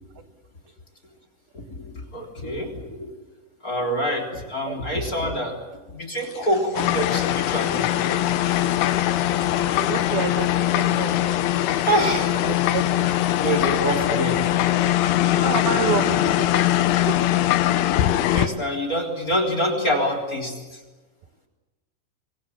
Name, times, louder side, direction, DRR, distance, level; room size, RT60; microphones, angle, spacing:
voice 1, 1.5-3.1 3.6-5.6 5.9-8.2 11.8-12.4 13.4-14.9 15.8-16.4 18.3-20.8, equal, 20° left, 5 dB, 3.3 m, -26 dB
sound 1, 6.2-15.4, left 5 dB, 45° left, 5.0 m, -45 dB
sound 2, 6.8-18.5, left 13 dB, 80° left, 3.5 m, -21 dB
voice 2, 9.8-11.2 12.4-12.9 15.4-17.2, right 9 dB, 80° right, 9 dB, 2.2 m, -29 dB
25.0 x 24.0 x 8.6 m, 1.3 s
omnidirectional pair, 5.7 m